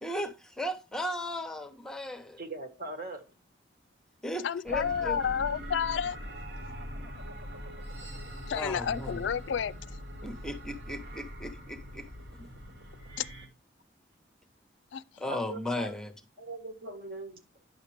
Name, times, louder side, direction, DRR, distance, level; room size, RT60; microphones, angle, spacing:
voice 1, 0.0-2.4 4.2-5.2 8.5-9.2 10.2-12.1 15.2-16.1, left 1 dB, 5° left, 0.9 m, -36 dB
voice 2, 2.4-3.2 15.2-15.9 16.4-17.4, right 2 dB, 50° right, 1.6 m, -40 dB
voice 3, 4.4-6.2 8.5-9.7 13.2-13.3 14.9-15.0, left 7 dB, 75° left, 0.4 m, -30 dB
sound 1, 4.7-13.5, equal, 70° right, 2.1 m, -42 dB
9.8 x 6.4 x 3.3 m
head